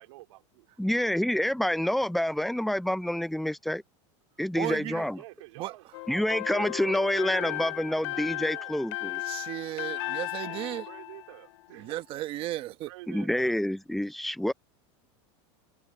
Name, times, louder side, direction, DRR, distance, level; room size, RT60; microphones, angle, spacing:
voice 1, 0.0-0.7 5.2-8.7 9.9-12.0 12.6-13.6, right 20 dB, 75° right, 3.5 m, -49 dB
voice 2, 0.8-3.8 4.4-5.2 6.1-9.2 13.1-14.5, left 1 dB, ahead, 0.5 m, -28 dB
voice 3, 4.6-5.1 5.6-5.7 9.2-10.9 11.8-12.9, right 15 dB, 35° right, 1.2 m, -34 dB
sound 1, 5.9-11.9, left 22 dB, 65° left, 2.9 m, -36 dB
supercardioid pair, 160°, 15 cm